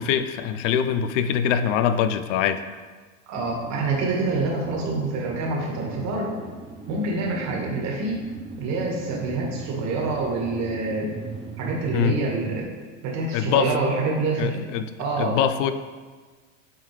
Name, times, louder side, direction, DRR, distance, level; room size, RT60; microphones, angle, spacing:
voice 1, 0.0-2.6 11.9-12.2 13.3-13.7 14.4-14.8 15.2-15.7, left 8 dB, 70° left, 10 dB, 0.5 m, -23 dB
voice 2, 3.3-6.3 6.9-8.3 8.6-11.1 11.6-12.7 13.0-14.6 15.0-15.4, right 3 dB, 45° right, -1 dB, 1.6 m, -26 dB
sound 1, 3.4-12.7, right 4 dB, 15° right, 0.6 m, -39 dB
7.9 x 3.8 x 3.2 m, 1.4 s
hypercardioid pair, 110°, 39 cm